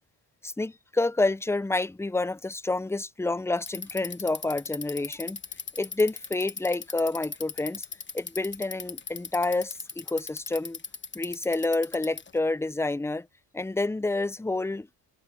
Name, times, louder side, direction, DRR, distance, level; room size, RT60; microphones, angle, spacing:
voice 1, 0.4-5.4 5.8-7.9 8.1-10.8 11.1-13.3 13.5-14.9, left 2 dB, 5° left, 0.5 m, -28 dB
Bicycle, 3.6-12.4, left 5 dB, 25° left, 1.1 m, -38 dB
cardioid pair, 85°, 42 cm